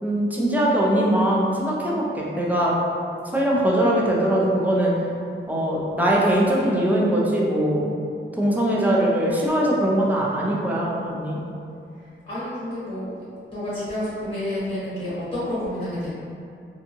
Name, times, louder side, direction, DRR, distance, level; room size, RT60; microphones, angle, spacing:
voice 1, 0.0-2.8 3.2-4.9 5.5-7.9 8.4-11.4, right 1 dB, 10° right, -5 dB, 0.5 m, -21 dB
voice 2, 12.0-13.1 13.5-16.1, left 1 dB, 30° left, -12 dB, 1.0 m, -29 dB
2.6 x 2.3 x 2.8 m, 2.5 s
wide cardioid pair, 100°, 21 cm